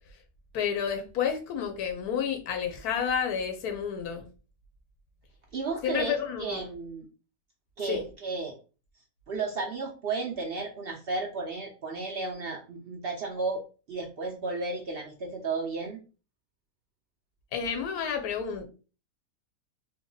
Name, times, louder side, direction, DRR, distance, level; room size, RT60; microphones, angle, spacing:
voice 1, 0.5-4.3 5.8-6.6 7.8-8.0 17.5-18.6, left 7 dB, 90° left, 1.3 m, -30 dB
voice 2, 5.5-7.1 7.8-8.6 9.3-13.6 13.9-16.0, right 3 dB, 55° right, 0.6 m, -33 dB
3.6 x 2.0 x 3.8 m
omnidirectional pair, 1.6 m